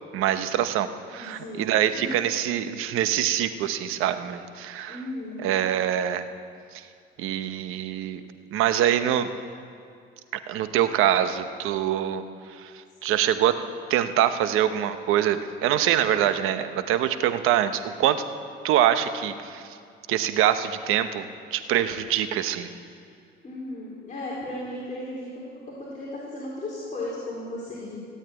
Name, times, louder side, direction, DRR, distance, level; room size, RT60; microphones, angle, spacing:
voice 1, 0.1-5.0 5.4-6.2 6.7-6.9 7.2-8.2 8.5-9.3 10.5-12.2 12.5-12.7 13.0-13.6 13.9-18.2 18.6-19.7 20.1-22.7, right 11 dB, 80° right, 10 dB, 1.0 m, -24 dB
voice 2, 1.1-2.1 4.9-5.4 23.4-25.3 25.8-28.0, left 1 dB, 35° left, -6 dB, 4.1 m, -35 dB
17.0 x 9.2 x 9.1 m, 2.3 s
cardioid pair, 100°, 21 cm